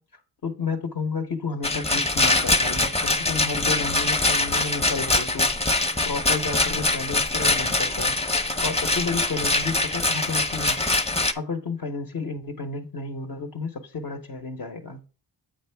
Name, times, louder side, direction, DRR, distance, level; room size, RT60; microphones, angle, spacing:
voice 1, 0.0-5.5 6.1-8.2 8.6-10.8 11.3-15.0, left 4 dB, 60° left, 0.9 m, -31 dB
Rattle, 1.6-11.3, left 2 dB, 15° left, 0.6 m, -23 dB
7.5 x 5.1 x 3.3 m
cardioid pair, 65°, 40 cm